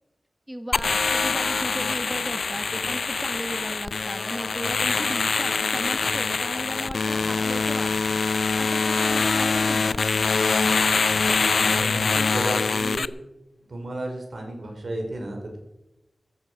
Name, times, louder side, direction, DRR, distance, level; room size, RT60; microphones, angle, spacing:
voice 1, 0.5-8.2 8.6-10.0, equal, 10° right, 7 dB, 1.1 m, -35 dB
sound 1, 0.7-13.1, left 4 dB, 80° left, 0.5 m, -24 dB
sound 2, 0.7-12.4 12.8-13.1, left 1 dB, 35° left, 6.9 m, -50 dB
voice 2, 11.8-13.1 13.7-15.6, right 1 dB, 70° right, 2 dB, 5.1 m, -33 dB
15.0 x 13.5 x 5.7 m, 0.94 s
wide cardioid pair, 80°, 0 cm